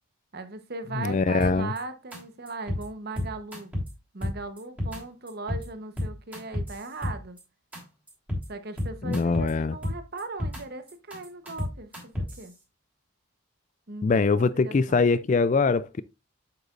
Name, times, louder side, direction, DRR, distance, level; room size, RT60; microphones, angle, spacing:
voice 1, 0.3-3.7 4.1-7.4 8.5-12.5 13.9-15.0, right 3 dB, 45° right, 1.0 m, -38 dB
voice 2, 0.9-1.7 9.0-9.8 14.0-16.0, left 4 dB, 35° left, 0.3 m, -23 dB
sound 1, 1.4-1.8 2.1-2.2 2.5-2.8 3.2-3.9 4.2-5.0 5.3-5.6 6.0-7.4 7.7-7.8 8.1-8.5 8.8-9.5 9.8-10.6 10.9-12.4, left 1 dB, 5° right, 3.1 m, -31 dB
8.2 x 8.0 x 2.5 m
head